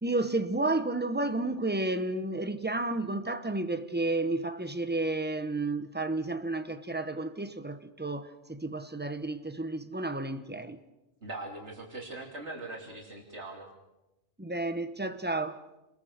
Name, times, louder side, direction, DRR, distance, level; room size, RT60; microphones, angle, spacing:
voice 1, 0.0-10.8 14.4-15.6, right 2 dB, 10° right, 1.1 m, -31 dB
voice 2, 11.2-13.7, right 2 dB, 65° right, 3.4 m, -41 dB
27.5 x 21.5 x 6.6 m
omnidirectional pair, 1.3 m